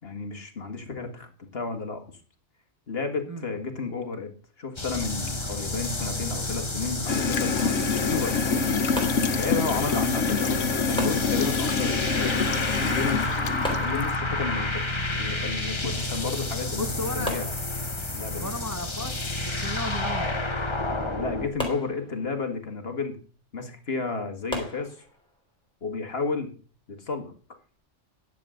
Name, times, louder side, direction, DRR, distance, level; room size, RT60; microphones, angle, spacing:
voice 1, 0.0-2.1 2.9-4.3 4.6-8.8 9.3-13.3 13.8-17.6 18.1-18.5 21.2-23.2 23.5-25.0 25.8-26.5 26.9-27.3, left 4 dB, 55° left, 6 dB, 1.9 m, -32 dB
sound 1, 4.8-21.5, left 2 dB, 25° left, 1.3 m, -30 dB
Gurgling / Toilet flush, 7.1-14.2, left 5 dB, 85° left, 1.2 m, -27 dB
sound 2, 9.0-10.0 11.0-12.0 13.6-14.6 16.3-16.4 16.7-16.8 17.3-18.3 21.6-22.6 24.5-25.4, equal, 5° left, 3.4 m, -36 dB
voice 2, 16.8-17.3 18.3-20.5 20.9-21.1, left 1 dB, 15° right, 5 dB, 0.9 m, -35 dB
10.5 x 7.5 x 5.0 m, 0.39 s
omnidirectional pair, 1.3 m